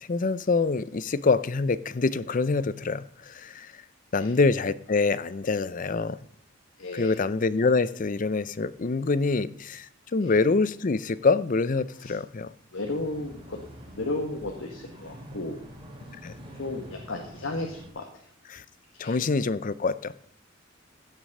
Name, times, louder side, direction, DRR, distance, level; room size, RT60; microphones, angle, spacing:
voice 1, 0.1-3.7 4.1-6.2 6.9-12.5 16.2-16.3 18.5-18.6 19.0-20.1, left 4 dB, 40° left, 0.5 m, -25 dB
voice 2, 6.8-7.2 10.2-10.3 12.0-12.2 12.7-13.6 13.9-15.6 16.5-18.2 18.9-19.2, left 2 dB, 80° left, 1.5 m, -34 dB
sound 1, 12.8-17.9, equal, 25° right, 2.9 m, -45 dB
16.0 x 6.2 x 5.4 m
head